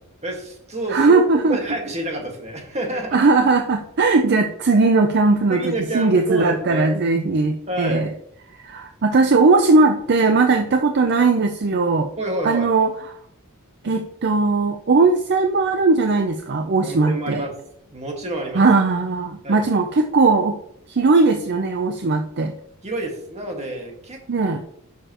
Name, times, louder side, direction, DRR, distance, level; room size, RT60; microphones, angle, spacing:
voice 1, 0.2-3.2 5.5-6.9 7.7-8.1 12.2-12.7 16.8-17.6 17.9-18.6 19.4-19.6 22.8-24.6, right 1 dB, 30° right, 2 dB, 1.7 m, -28 dB
voice 2, 0.9-1.6 3.1-8.1 8.5-12.1 12.4-12.9 13.8-17.4 18.5-20.6 20.9-22.5 24.3-24.6, right 3 dB, 50° right, 6 dB, 0.6 m, -18 dB
10.0 x 6.8 x 3.0 m, 0.71 s
head